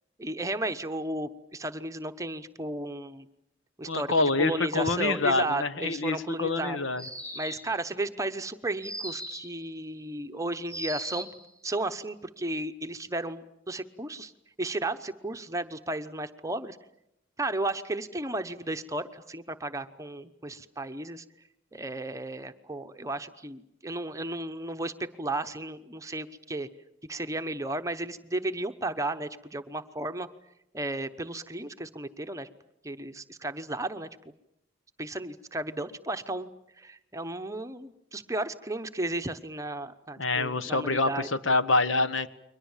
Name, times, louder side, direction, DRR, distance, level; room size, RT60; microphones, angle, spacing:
voice 1, 0.2-3.3 3.8-6.8 7.3-11.3 11.6-14.3 14.6-16.8 17.4-21.2 21.7-26.7 27.1-30.3 30.7-32.5 32.8-34.1 35.0-36.5 36.8-41.3, right 2 dB, 15° right, 9 dB, 0.9 m, -34 dB
voice 2, 3.9-7.0 40.2-42.4, left 3 dB, 80° left, 13 dB, 1.3 m, -26 dB
sound 1, 7.0-7.8 8.8-9.6 10.7-11.4, right 1 dB, 5° left, 4.3 m, -38 dB
30.0 x 23.0 x 7.3 m, 0.82 s
head